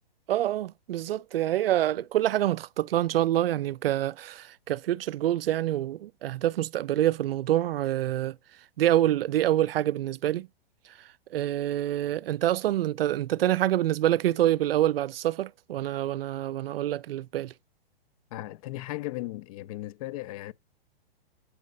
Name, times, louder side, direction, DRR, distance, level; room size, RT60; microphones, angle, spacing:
voice 1, 0.3-8.4 8.8-10.5 10.9-17.5, right 13 dB, 70° right, 0.5 m, -26 dB
voice 2, 18.3-20.5, left 16 dB, 35° left, 0.5 m, -36 dB
8.4 x 7.1 x 5.3 m
hypercardioid pair, 130°, 30 cm